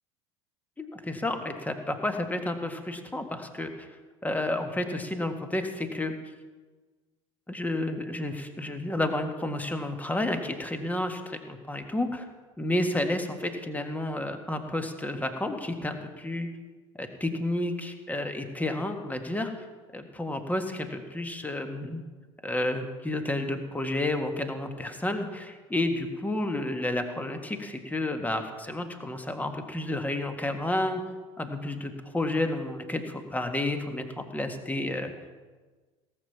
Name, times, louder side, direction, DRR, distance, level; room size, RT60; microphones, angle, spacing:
voice 1, 0.8-3.9 4.2-6.1 7.5-12.3 12.6-16.5 16.9-19.5 19.9-22.0 22.4-31.0 31.4-35.1, left 1 dB, 10° left, 6 dB, 1.7 m, -31 dB
18.0 x 7.3 x 5.8 m, 1.3 s
figure-of-eight pair, 65°, 16 cm